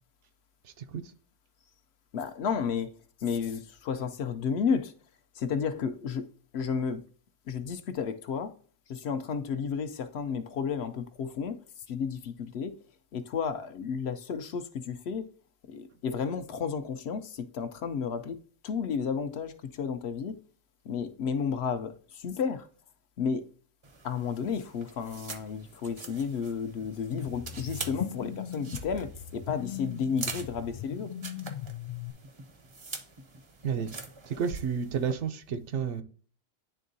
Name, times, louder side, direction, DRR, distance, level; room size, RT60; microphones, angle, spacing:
voice 1, 2.1-2.9 3.2-4.9 5.3-6.3 6.5-7.0 7.5-8.5 8.9-11.6 11.9-12.7 13.1-15.2 15.7-18.4 18.6-20.4 20.8-22.7 23.2-23.5 24.0-31.1, left 6 dB, 65° left, 0.8 m, -32 dB
sound 1, 23.8-35.1, right 4 dB, 35° right, 0.5 m, -45 dB
sound 2, 27.1-32.1, left 10 dB, 90° left, 0.3 m, -38 dB
voice 2, 34.3-36.0, right 7 dB, 75° right, 0.9 m, -30 dB
10.0 x 3.6 x 2.6 m
omnidirectional pair, 1.3 m